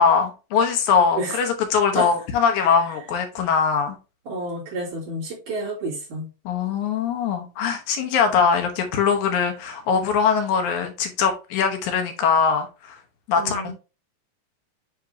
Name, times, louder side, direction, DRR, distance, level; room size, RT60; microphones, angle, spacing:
voice 1, 0.0-4.0 6.5-13.0 13.3-13.7, left 6 dB, 70° left, 2.3 m, -21 dB
voice 2, 4.3-6.3 8.3-8.4 13.4-13.7, right 1 dB, 70° right, 4.2 m, -29 dB
9.6 x 3.7 x 2.7 m
omnidirectional pair, 3.7 m